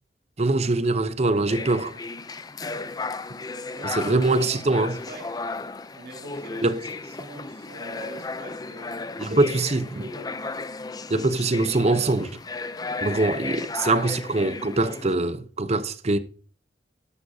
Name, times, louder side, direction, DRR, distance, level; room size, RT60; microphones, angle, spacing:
voice 1, 0.4-1.9 3.8-4.9 6.6-6.8 9.2-9.9 11.1-12.3 13.0-16.2, right 2 dB, 40° right, 0.8 m, -23 dB
sound 1, 1.5-15.1, left 3 dB, 20° left, 0.5 m, -35 dB
voice 2, 3.7-5.4 5.9-8.9 9.9-10.4 12.0-12.1, right 1 dB, 60° right, 3.5 m, -43 dB
12.0 x 11.0 x 2.8 m
head